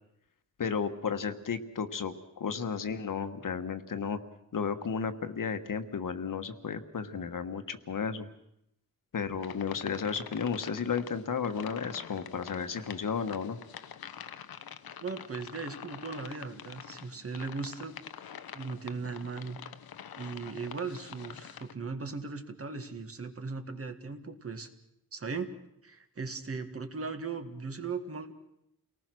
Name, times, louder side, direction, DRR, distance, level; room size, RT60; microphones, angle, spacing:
voice 1, 0.6-4.2 4.5-8.3 9.1-13.6, left 6 dB, 65° left, 9 dB, 1.4 m, -33 dB
sound 1, 9.4-21.7, left 8 dB, 90° left, 1.0 m, -46 dB
voice 2, 15.0-18.0 18.5-19.6 20.2-24.7 25.1-25.5 25.8-28.3, right 4 dB, 40° right, 7 dB, 1.9 m, -38 dB
29.5 x 19.0 x 6.2 m, 0.79 s
wide cardioid pair, 165°, 35 cm